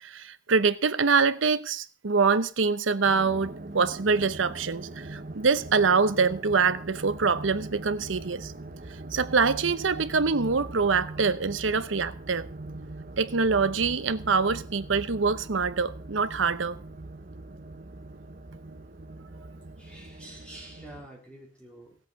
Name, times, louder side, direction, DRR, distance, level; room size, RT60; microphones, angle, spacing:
voice 1, 0.0-8.5 9.1-12.5 13.2-16.8, right 5 dB, 90° right, 0.8 m, -25 dB
sound 1, 3.0-21.1, right 2 dB, 45° right, 0.9 m, -42 dB
voice 2, 19.8-22.0, right 1 dB, 5° left, 3.6 m, -47 dB
16.5 x 8.0 x 5.8 m
head